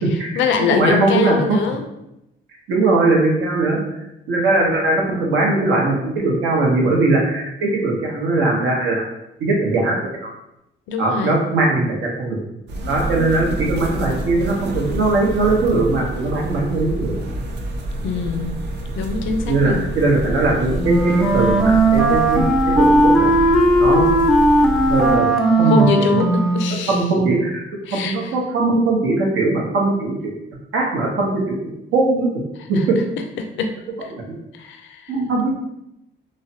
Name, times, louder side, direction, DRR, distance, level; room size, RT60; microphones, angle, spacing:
voice 1, 0.1-1.9 10.9-11.4 18.0-18.6 19.0-19.9 25.6-27.1 27.8-28.4 32.6-33.7 34.0-34.1 34.5-35.2, left 5 dB, 75° left, 6 dB, 0.4 m, -24 dB
voice 2, 0.7-1.6 2.7-3.8 4.3-9.0 9.4-10.0 10.2-10.3 11.0-12.4 12.9-17.1 19.5-22.4 22.8-23.3 23.8-24.1 24.9-25.3 25.6-25.8 26.1-26.2 26.7-27.6 27.9-30.3 30.7-32.3 32.7-33.0 34.1-34.4 35.1-35.6, right 2 dB, 85° right, -2 dB, 0.8 m, -19 dB
sound 1, 12.7-25.2, right 1 dB, 60° right, 0.5 m, -28 dB
Wind instrument woodwind instrument, 20.8-26.8, right 1 dB, ahead, 0.4 m, -16 dB
3.1 x 2.1 x 2.7 m, 0.86 s
cardioid pair, 90°, 20 cm